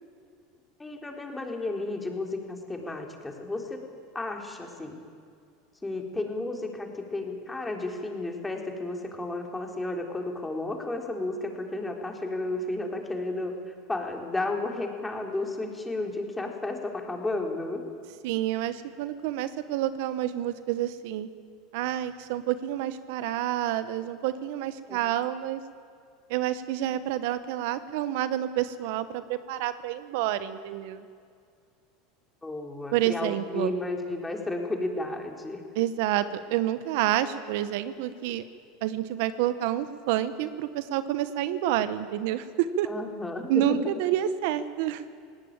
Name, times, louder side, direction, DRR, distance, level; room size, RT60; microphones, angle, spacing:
voice 1, 0.8-3.8 4.1-5.0 5.8-13.5 13.9-17.8 24.9-25.0 32.4-35.6 42.9-43.8, left 2 dB, 10° left, 2 dB, 3.7 m, -32 dB
voice 2, 18.2-21.3 21.7-25.6 26.3-31.1 32.9-33.7 35.7-38.4 38.8-42.9 43.5-45.1, right 12 dB, 70° right, 13 dB, 1.1 m, -28 dB
20.0 x 17.5 x 9.0 m, 2.3 s
supercardioid pair, 105°, 0 cm